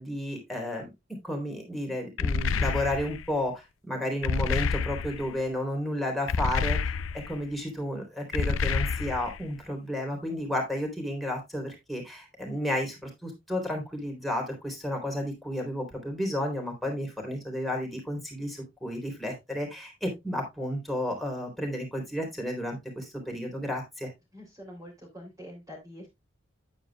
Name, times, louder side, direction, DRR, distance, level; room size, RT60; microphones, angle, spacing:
voice 1, 0.0-7.0 7.3-24.1, left 1 dB, ahead, 0 dB, 3.5 m, -32 dB
sound 1, 2.2-3.3 4.2-5.3 6.3-7.4 8.3-9.4, left 5 dB, 90° left, 0.5 m, -28 dB
voice 2, 24.3-26.1, equal, 20° right, -5 dB, 3.4 m, -45 dB
9.6 x 9.0 x 2.3 m, 0.21 s
head